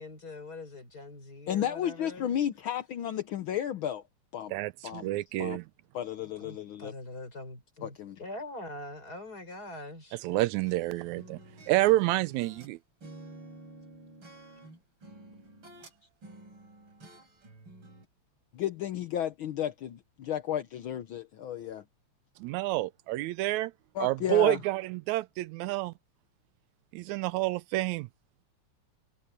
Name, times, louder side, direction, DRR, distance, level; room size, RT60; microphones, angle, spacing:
voice 1, 0.0-2.4 6.4-10.2, left 2 dB, 30° left, 5.5 m, -43 dB
voice 2, 1.5-4.0 4.3-4.5 4.8-5.1 5.4-5.6 5.9-6.9 7.8-8.2 18.5-21.8 23.9-24.6, left 10 dB, 75° left, 1.2 m, -33 dB
voice 3, 4.5-5.6 10.2-11.4 11.7-12.8 22.4-23.7 24.0-25.9 26.9-28.1, right 17 dB, 80° right, 1.9 m, -28 dB
sound 1, 10.6-12.7 13.0-18.1, right 2 dB, 40° right, 5.0 m, -50 dB
omnidirectional pair, 3.3 m